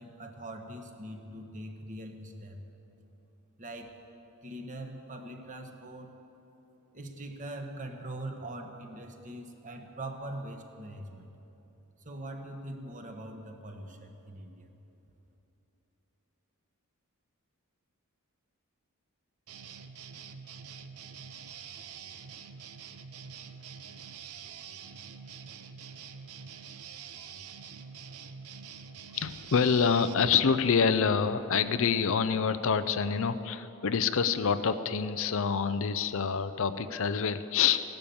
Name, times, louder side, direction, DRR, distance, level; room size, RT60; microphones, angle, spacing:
voice 1, 0.0-2.6 3.6-4.0 4.4-6.1 6.9-11.2 12.0-14.8, right 1 dB, 35° right, 4 dB, 1.3 m, -42 dB
sound 1, 19.5-30.1, right 6 dB, 80° right, 0.8 m, -46 dB
voice 2, 29.1-37.8, left 6 dB, 60° left, 12 dB, 0.5 m, -27 dB
16.5 x 12.0 x 7.1 m, 3.0 s
head